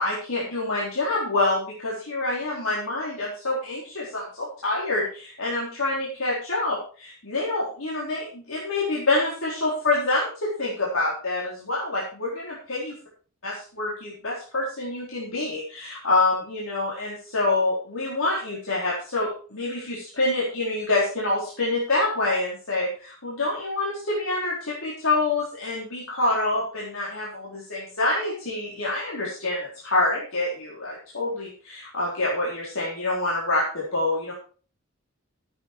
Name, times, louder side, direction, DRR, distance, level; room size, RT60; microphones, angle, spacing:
voice 1, 0.0-12.9 13.4-34.3, left 2 dB, 85° left, -6 dB, 4.2 m, -26 dB
13.5 x 9.2 x 4.5 m, 0.41 s
head